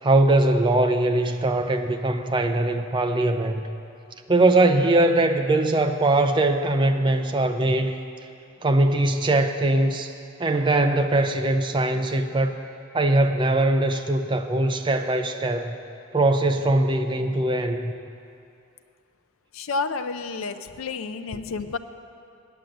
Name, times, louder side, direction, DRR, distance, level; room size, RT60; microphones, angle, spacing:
voice 1, 0.0-3.6 4.3-8.0 8.6-10.1 10.4-12.6 12.9-15.8 16.1-17.9, right 2 dB, 25° right, 7 dB, 0.5 m, -21 dB
voice 2, 19.5-21.8, left 4 dB, 80° left, 9 dB, 0.5 m, -30 dB
8.9 x 8.6 x 7.8 m, 2.6 s
head